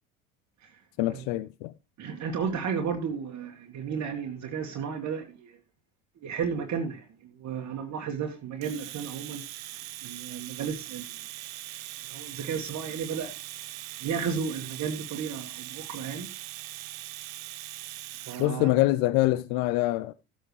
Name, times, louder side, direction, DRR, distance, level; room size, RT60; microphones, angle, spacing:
voice 1, 1.0-1.7 18.4-20.1, left 18 dB, 60° left, 0.8 m, -25 dB
voice 2, 2.0-5.5 6.2-7.1 7.4-9.7 10.0-11.2 12.1-13.3 14.0-16.3 18.1-18.7, right 6 dB, 45° right, 1.8 m, -33 dB
Domestic sounds home sounds, 8.6-18.5, right 16 dB, 75° right, 0.9 m, -41 dB
15.5 x 8.0 x 3.2 m
hypercardioid pair, 75°, 40 cm